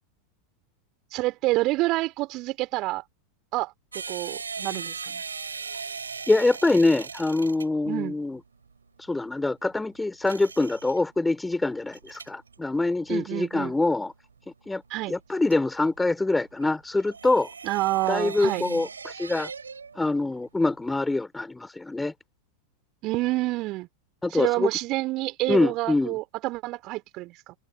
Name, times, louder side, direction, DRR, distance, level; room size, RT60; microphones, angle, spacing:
voice 1, 1.1-3.0 3.5-5.2 7.9-8.2 13.1-13.7 14.9-15.1 17.6-18.6 23.0-23.9 24.3-27.5, right 20 dB, 40° right, 4.2 m, -28 dB
sound 1, 3.9-20.0 20.3-21.2, right 5 dB, 75° right, 3.6 m, -39 dB
voice 2, 6.3-8.4 9.1-14.1 14.7-14.8 15.1-17.5 18.1-19.5 20.0-22.1 24.2-24.7 25.5-26.2, left 2 dB, 5° left, 3.0 m, -24 dB
figure-of-eight pair, 90°, 0 cm